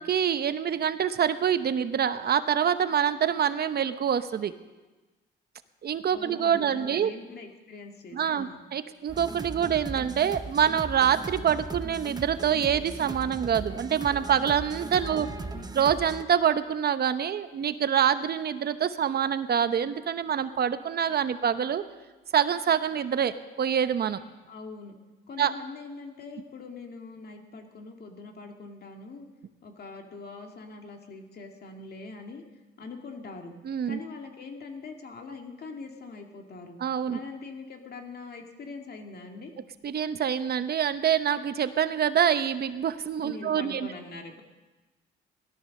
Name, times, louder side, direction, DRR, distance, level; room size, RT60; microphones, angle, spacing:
voice 1, 0.0-4.5 5.8-7.1 8.1-15.3 15.7-21.8 22.3-24.2 25.4-25.5 33.6-34.0 36.8-37.2 39.8-43.9, right 8 dB, 55° right, 11 dB, 0.9 m, -26 dB
voice 2, 6.1-8.6 14.9-15.7 24.5-24.9 25.3-29.3 29.6-32.4 32.8-33.5 33.8-36.8 37.1-39.5 43.2-44.4, left 3 dB, 55° left, 3 dB, 2.3 m, -43 dB
sound 1, 9.1-16.2, right 3 dB, 20° right, 0.9 m, -38 dB
17.0 x 12.5 x 6.6 m, 1.2 s
cardioid pair, 90°, 20 cm